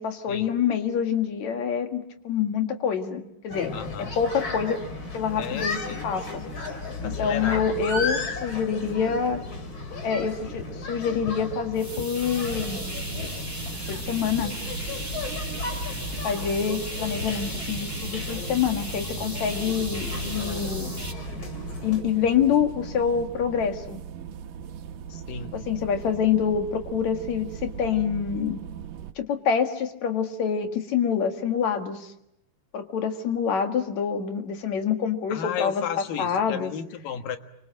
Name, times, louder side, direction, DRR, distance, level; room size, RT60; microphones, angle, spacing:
voice 1, 0.0-3.7 4.0-4.8 5.1-6.4 7.0-9.4 10.0-12.9 13.9-14.5 16.2-20.9 21.8-24.0 25.5-28.6 29.2-32.1 32.7-35.8 36.2-36.7, left 7 dB, 60° left, 5 dB, 2.9 m, -26 dB
sound 1, 3.5-22.0, left 3 dB, 35° left, 3.7 m, -35 dB
voice 2, 3.7-4.1 5.4-6.1 7.0-7.7 25.1-25.5 35.3-37.4, left 8 dB, 80° left, 7 dB, 3.2 m, -33 dB
sound 2, 11.7-21.1, equal, 5° left, 3.8 m, -36 dB
sound 3, 12.5-29.1, right 8 dB, 75° right, 2.8 m, -39 dB
28.5 x 25.0 x 7.7 m, 0.81 s
omnidirectional pair, 4.0 m